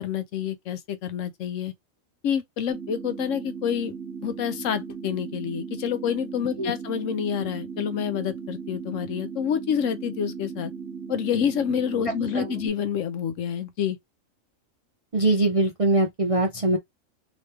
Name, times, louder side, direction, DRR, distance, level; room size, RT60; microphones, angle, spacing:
voice 1, 0.0-1.7 2.2-3.9 4.2-10.7 11.1-14.0, left 8 dB, 75° left, 1.0 m, -28 dB
sound 1, 2.7-12.7, right 6 dB, 70° right, 1.0 m, -37 dB
voice 2, 15.1-16.8, right 2 dB, 45° right, 0.4 m, -22 dB
3.1 x 2.9 x 3.2 m
omnidirectional pair, 1.4 m